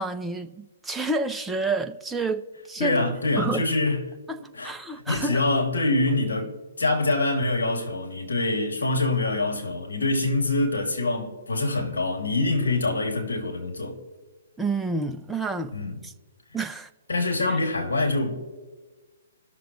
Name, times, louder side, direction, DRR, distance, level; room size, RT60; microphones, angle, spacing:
voice 1, 0.0-3.0 3.4-3.6 4.3-5.4 14.6-15.7 16.0-16.1 16.5-16.9 17.5-17.6, right 3 dB, 5° right, 0.6 m, -29 dB
voice 2, 2.8-4.0 4.5-4.7 5.1-14.0 15.7-16.0 17.1-18.5, left 2 dB, 75° left, 2.5 m, -25 dB
19.0 x 6.8 x 3.1 m
hypercardioid pair, 135°, 0 cm